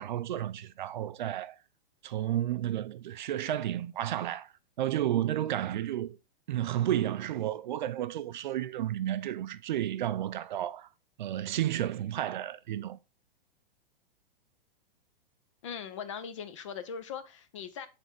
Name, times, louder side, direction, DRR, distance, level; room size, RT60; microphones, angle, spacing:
voice 1, 0.0-1.6 2.0-6.2 6.5-10.9 11.2-13.0, right 12 dB, 50° right, 0.4 m, -32 dB
voice 2, 15.6-17.9, left 7 dB, 35° left, 0.5 m, -40 dB
7.0 x 3.5 x 4.4 m
hypercardioid pair, 170°, 29 cm